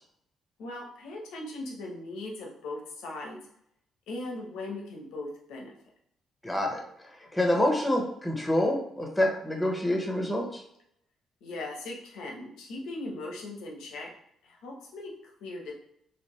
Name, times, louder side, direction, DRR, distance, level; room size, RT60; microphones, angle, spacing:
voice 1, 0.6-3.4 4.1-5.7 11.4-14.1 14.4-15.7, left 2 dB, 90° left, 0 dB, 0.9 m, -39 dB
voice 2, 6.4-6.8 7.3-10.4, left 1 dB, 10° left, 2 dB, 0.9 m, -26 dB
4.2 x 2.5 x 3.1 m, 0.71 s
cardioid pair, 90°, 0 cm